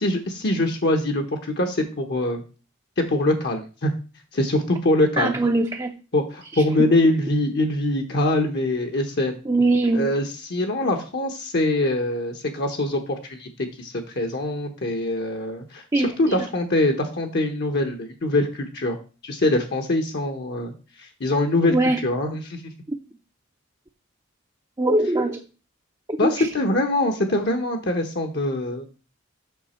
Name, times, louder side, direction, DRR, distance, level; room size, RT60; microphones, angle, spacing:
voice 1, 0.0-2.4 3.0-3.9 4.3-5.4 6.1-9.4 9.9-19.0 19.2-20.7 21.0-22.6 26.2-28.8, left 1 dB, 55° left, 4 dB, 1.0 m, -23 dB
voice 2, 5.2-5.9 6.5-6.6 9.5-10.1 15.9-16.3 21.7-22.0 22.9-23.0 24.8-25.4 26.1-26.5, right 2 dB, 20° right, 3 dB, 0.6 m, -22 dB
8.1 x 6.0 x 4.3 m, 0.34 s
head